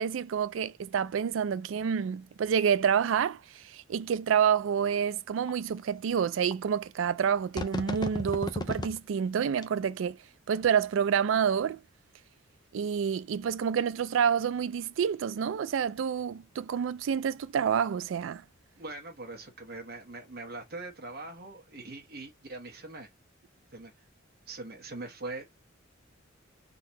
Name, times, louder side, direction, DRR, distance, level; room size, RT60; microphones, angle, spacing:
voice 1, 0.0-10.2 10.5-11.8 12.7-18.4, right 7 dB, 70° right, 0.3 m, -28 dB
sound 1, 4.6-4.7 5.5-5.6 6.5-6.6 7.6-9.0 9.5-9.6, left 2 dB, 20° left, 0.5 m, -33 dB
voice 2, 18.8-23.1 23.7-24.1 24.5-25.4, right 2 dB, 50° right, 1.0 m, -42 dB
3.9 x 2.7 x 2.9 m
head